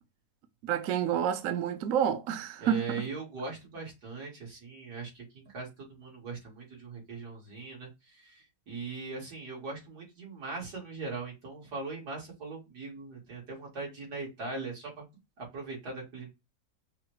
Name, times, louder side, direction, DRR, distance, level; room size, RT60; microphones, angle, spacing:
voice 1, 0.6-3.1, right 9 dB, 65° right, 0.9 m, -29 dB
voice 2, 2.6-15.0 15.4-16.3, right 4 dB, 85° right, 2.8 m, -40 dB
5.5 x 2.3 x 3.1 m
omnidirectional pair, 1.7 m